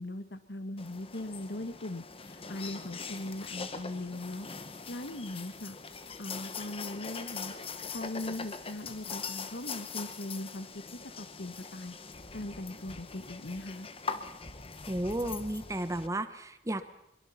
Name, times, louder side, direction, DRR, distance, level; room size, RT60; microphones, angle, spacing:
voice 1, 0.0-4.5 4.9-5.8 6.2-7.5 7.9-10.8 11.2-11.9 12.3-13.9, left 1 dB, 70° left, 10 dB, 1.4 m, -39 dB
sound 1, 0.8-16.1, left 5 dB, 35° left, 1.1 m, -42 dB
voice 2, 14.9-17.0, right 1 dB, 20° right, 10 dB, 1.1 m, -33 dB
22.5 x 22.5 x 5.8 m, 0.79 s
head